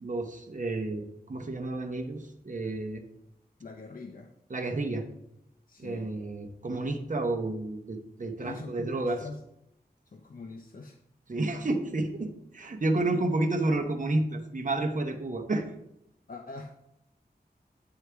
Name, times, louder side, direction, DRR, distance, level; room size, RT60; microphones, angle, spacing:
voice 1, 0.0-3.0 4.5-5.0 5.8-9.2 11.3-15.7, right 2 dB, 50° right, 4 dB, 0.9 m, -30 dB
voice 2, 3.6-4.3 5.7-6.1 8.4-9.4 10.1-11.0 13.1-13.2 16.3-16.8, left 3 dB, 55° left, 3 dB, 0.6 m, -43 dB
8.1 x 4.8 x 3.4 m, 0.81 s
wide cardioid pair, 80°, 17 cm